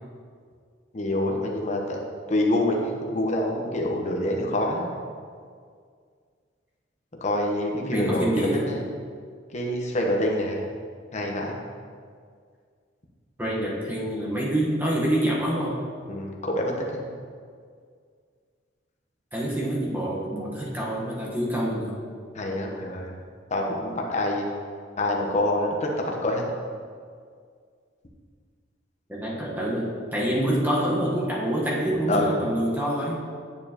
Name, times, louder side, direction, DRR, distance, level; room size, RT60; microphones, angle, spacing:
voice 1, 0.9-2.0 2.3-5.0 7.2-8.8 9.5-10.6 11.1-11.6 16.1-17.0 22.3-23.1 23.5-24.4 25.0-26.4 32.1-32.3, left 1 dB, 40° left, 0 dB, 0.9 m, -26 dB
voice 2, 7.8-8.7 13.4-15.7 19.3-21.9 29.1-33.2, right 1 dB, 10° right, -5 dB, 1.1 m, -26 dB
8.8 x 6.8 x 2.9 m, 2.1 s
head